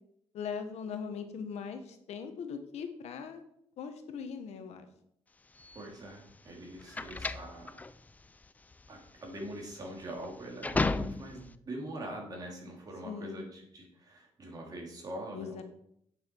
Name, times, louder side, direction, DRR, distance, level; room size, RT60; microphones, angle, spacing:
voice 1, 0.3-3.4 3.8-4.9 13.0-13.4 15.3-15.6, left 6 dB, 70° left, 7 dB, 1.2 m, -40 dB
sound 1, 5.6-11.5, left 3 dB, 15° left, 0.4 m, -35 dB
voice 2, 5.7-7.8 8.9-15.6, right 1 dB, 35° right, 0 dB, 2.8 m, -43 dB
8.9 x 7.6 x 4.5 m, 0.73 s
cardioid pair, 125°, 11 cm